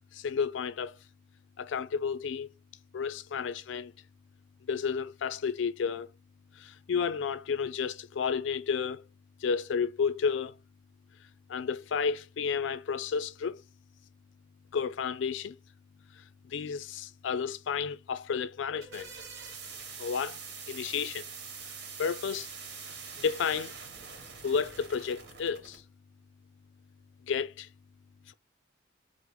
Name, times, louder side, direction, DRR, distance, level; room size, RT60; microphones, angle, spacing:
voice 1, 0.1-1.0 1.6-2.5 2.9-3.9 4.7-6.1 6.5-9.0 9.4-10.5 11.5-13.6 14.7-15.5 16.1-19.1 20.0-20.4 20.7-21.3 22.0-22.5 22.8-23.7 24.4-25.8 27.3-27.7, left 6 dB, 70° left, 0.4 m, -32 dB
sound 1, 18.5-25.8, right 5 dB, 60° right, 1.2 m, -44 dB
5.1 x 2.0 x 4.5 m
head